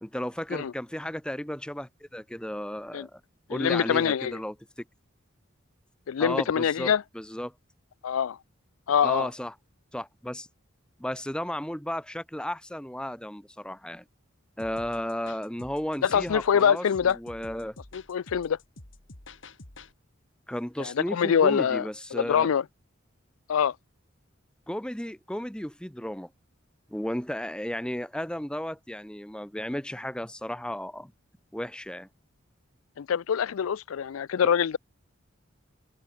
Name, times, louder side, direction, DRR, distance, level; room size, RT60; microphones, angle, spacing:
voice 1, 0.0-3.2 3.5-4.6 6.2-7.5 9.0-9.5 9.9-10.5 11.0-14.0 14.6-17.8 20.5-22.5 24.7-26.3 26.9-31.1 31.5-32.1, equal, 5° left, 0.8 m, -34 dB
voice 2, 3.5-4.4 6.1-7.0 8.0-8.4 8.9-9.3 16.0-17.2 17.9-18.6 20.8-21.8 22.1-22.6 23.5-23.7 33.0-34.8, left 7 dB, 80° left, 0.4 m, -24 dB
sound 1, 14.6-19.9, left 2 dB, 65° left, 3.2 m, -49 dB
head